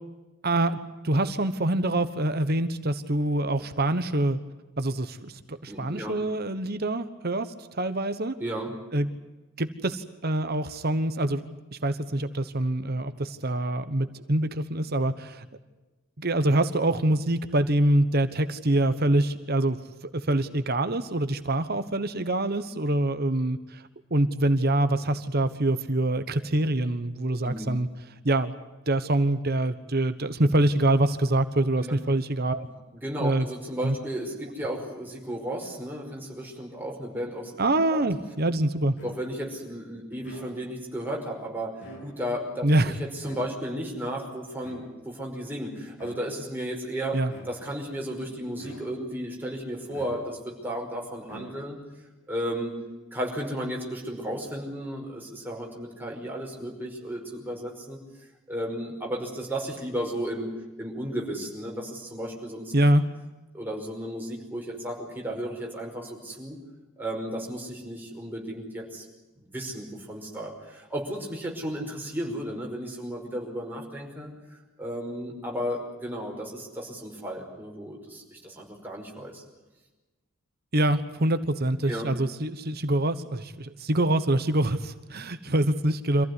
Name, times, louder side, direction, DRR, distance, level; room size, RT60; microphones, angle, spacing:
voice 1, 0.4-0.8 1.0-4.4 4.8-8.3 8.9-9.1 9.6-11.4 11.7-15.5 16.2-19.8 20.1-23.8 24.1-27.9 28.2-28.5 28.9-32.7 33.2-33.5 33.8-34.0 37.6-39.0 42.6-43.0 47.1-47.3 62.7-63.0 80.7-86.3, right 1 dB, 50° right, 10 dB, 1.2 m, -25 dB
voice 2, 5.7-6.1 8.4-8.7 27.4-27.7 31.8-32.0 33.0-37.6 37.9-38.0 39.0-47.2 47.5-51.8 52.3-52.7 53.1-58.0 58.5-62.7 63.5-66.6 67.0-69.1 69.4-74.3 74.8-79.4 81.9-82.1, equal, 10° right, -1 dB, 5.4 m, -34 dB
sound 1, 39.0-39.5 40.1-40.9 41.7-42.5 43.2-43.9 44.6-45.2 45.9-46.5 47.3-47.9 48.6-49.2 49.9-50.6 51.2-51.9, right 2 dB, 60° left, 7.9 m, -46 dB
26.0 x 15.5 x 9.7 m, 1.1 s
head